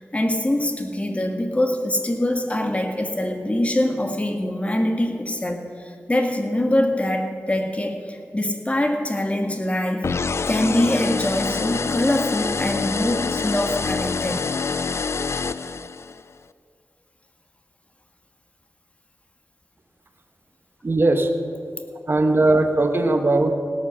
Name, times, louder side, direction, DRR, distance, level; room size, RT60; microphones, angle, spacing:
voice 1, 0.1-10.1 10.5-14.5, left 1 dB, 25° left, 4 dB, 1.7 m, -24 dB
sound 1, 10.0-16.2, left 4 dB, 60° left, 0.4 m, -26 dB
voice 2, 20.8-21.3 22.1-23.5, right 2 dB, 45° right, 5 dB, 1.3 m, -19 dB
17.5 x 8.7 x 6.4 m, 2.3 s
wide cardioid pair, 60°, 5 cm